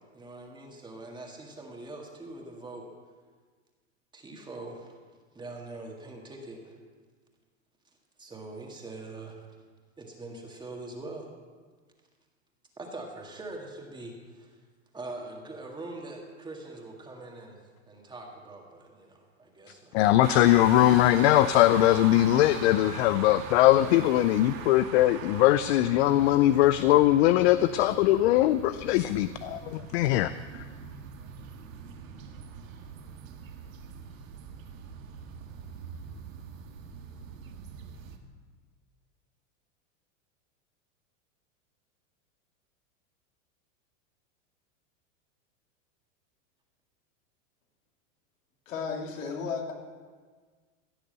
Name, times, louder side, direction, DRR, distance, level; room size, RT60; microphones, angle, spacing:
voice 1, 0.1-2.9 4.1-5.0 5.3-6.8 8.2-9.4 10.0-11.3 12.8-14.6 14.9-17.6 17.9-20.0, right 2 dB, 10° right, 0 dB, 1.8 m, -43 dB
voice 2, 19.9-30.6, left 14 dB, 55° left, 14 dB, 0.5 m, -21 dB
sound 1, 20.2-38.2, right 7 dB, 80° right, 1.7 m, -42 dB
voice 3, 48.7-49.7, left 5 dB, 75° left, 1 dB, 2.7 m, -33 dB
16.0 x 6.7 x 7.8 m, 1.5 s
supercardioid pair, 145°, 40 cm